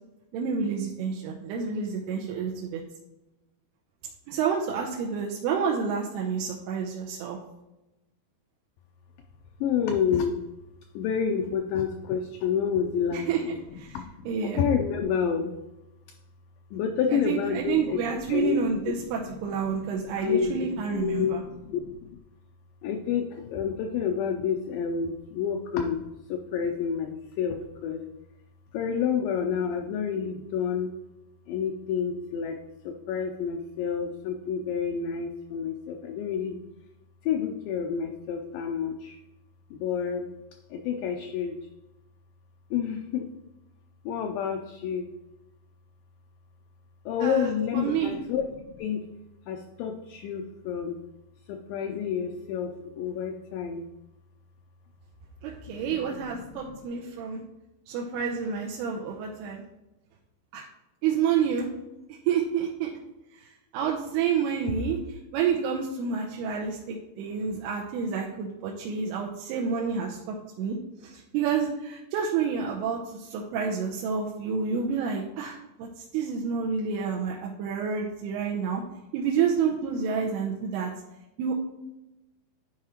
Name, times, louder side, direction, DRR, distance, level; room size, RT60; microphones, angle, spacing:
voice 1, 0.3-2.8 4.3-7.4 13.1-13.4 13.8-13.9 14.3-14.7 17.1-21.4 47.2-48.1 55.4-57.4 57.9-59.6 60.5-60.6 61.0-61.7 62.3-62.9 63.3-78.8 79.1-80.9 81.4-81.5, right 6 dB, 85° right, -1 dB, 2.7 m, -29 dB
voice 2, 9.6-10.4 10.9-15.6 16.7-18.6 19.3-22.1 22.8-26.0 26.3-28.0 28.7-30.9 31.5-32.6 32.8-36.6 37.2-39.2 39.7-40.3 40.7-41.6 42.7-43.3 44.1-45.1 47.1-49.1 49.5-51.0 51.5-53.9 55.7-56.8, left 7 dB, 85° left, 4 dB, 2.0 m, -29 dB
10.5 x 4.8 x 2.9 m, 0.96 s
omnidirectional pair, 4.6 m